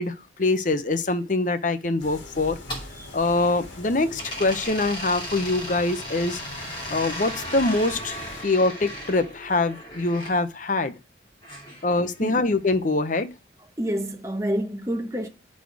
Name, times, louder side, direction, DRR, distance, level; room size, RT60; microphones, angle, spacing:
voice 1, 0.0-2.6 3.1-6.4 6.9-10.9 11.8-13.3, left 2 dB, 40° left, 0.7 m, -24 dB
sound 1, 2.0-8.4, left 2 dB, 75° left, 2.1 m, -43 dB
sound 2, 2.4-3.8 4.2-10.3 11.4-12.6, equal, 25° left, 2.6 m, -37 dB
voice 2, 13.8-15.3, equal, 15° right, 0.9 m, -28 dB
11.0 x 4.2 x 4.7 m
head